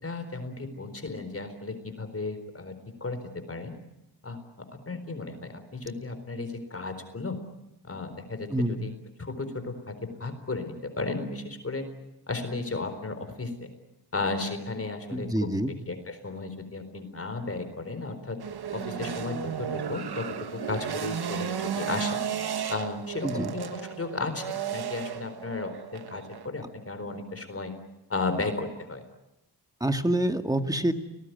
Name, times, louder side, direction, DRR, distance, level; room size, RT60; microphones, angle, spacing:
voice 1, 0.0-2.8 3.0-3.2 3.5-3.7 4.2-7.4 7.8-8.9 9.2-11.9 12.3-13.7 14.1-15.5 15.9-18.4 18.7-22.2 22.7-27.7 28.1-29.0, left 3 dB, 30° left, 9 dB, 4.2 m, -34 dB
voice 2, 15.1-15.7 23.2-23.5 29.8-30.9, right 1 dB, 10° right, 6 dB, 2.1 m, -26 dB
sound 1, 18.4-26.5, right 8 dB, 60° right, 1.5 m, -34 dB
29.5 x 19.5 x 9.4 m, 0.92 s
cardioid pair, 90°, 43 cm